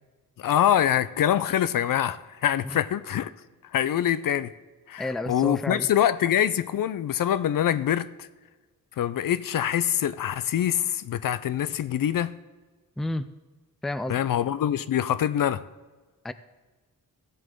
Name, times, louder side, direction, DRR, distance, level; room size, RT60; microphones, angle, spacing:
voice 1, 0.4-3.3 3.7-4.5 4.9-8.3 9.0-12.3 14.1-15.6, left 10 dB, 65° left, 0.5 m, -24 dB
voice 2, 5.0-5.9 13.0-13.3 13.8-14.2 16.2-16.3, left 2 dB, ahead, 0.4 m, -30 dB
15.5 x 7.8 x 3.8 m
wide cardioid pair, 105°, 35 cm